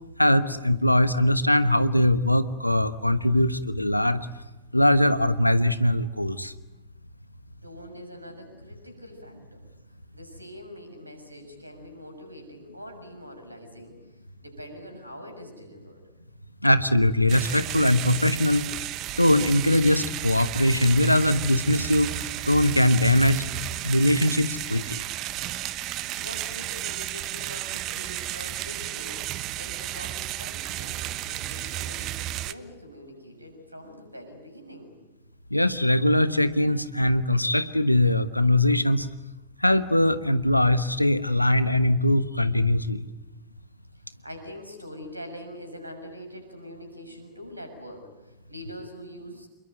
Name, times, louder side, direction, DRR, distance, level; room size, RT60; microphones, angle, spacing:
voice 1, 0.2-4.2 4.7-6.5 16.6-18.7 19.2-22.1 22.5-23.5 23.8-25.0 35.5-39.1 39.6-43.0, left 1 dB, 85° left, 13 dB, 1.2 m, -21 dB
voice 2, 7.6-9.6 10.1-13.9 14.4-16.0 25.9-34.9 43.9-49.5, equal, 85° right, 5 dB, 6.6 m, -44 dB
sound 1, 17.3-32.5, right 14 dB, 35° right, 1.0 m, -33 dB
28.0 x 22.5 x 9.2 m, 1.1 s
figure-of-eight pair, 90°, 0 cm